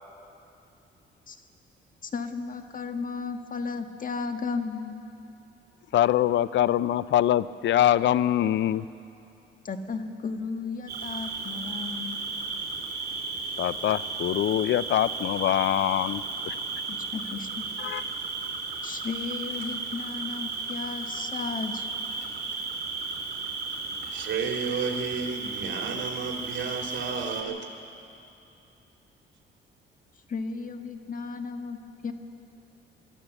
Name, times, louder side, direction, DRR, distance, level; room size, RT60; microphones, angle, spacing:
voice 1, 2.0-5.0 9.6-12.2 16.9-17.6 18.8-21.9 30.3-32.1, left 4 dB, 45° left, 6 dB, 1.5 m, -34 dB
voice 2, 5.9-8.9 13.6-16.6 17.8-18.0, left 12 dB, 70° left, 17 dB, 0.5 m, -24 dB
Cricket, 10.9-27.4, right 4 dB, 50° right, 3.3 m, -34 dB
voice 3, 24.1-27.6, right 5 dB, 70° right, 2 dB, 2.6 m, -32 dB
23.5 x 13.5 x 8.1 m, 2.8 s
cardioid pair, 90°, 20 cm